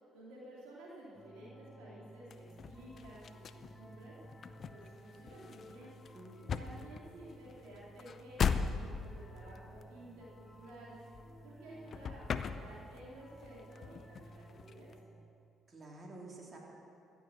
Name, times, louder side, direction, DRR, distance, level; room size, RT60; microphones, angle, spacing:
voice 1, 0.1-4.2 4.7-5.9 6.5-11.0 11.4-14.9, right 1 dB, 80° right, -5 dB, 2.7 m, -53 dB
sound 1, 1.1-15.3, equal, 10° left, 1.8 m, -56 dB
sound 2, 2.3-11.6 11.9-13.1 13.4-14.9, left 6 dB, 55° left, 0.6 m, -39 dB
voice 2, 6.1-6.8 15.7-16.6, right 2 dB, 40° right, -2 dB, 2.9 m, -51 dB
15.0 x 6.9 x 7.6 m, 2.6 s
hypercardioid pair, 55°, 0 cm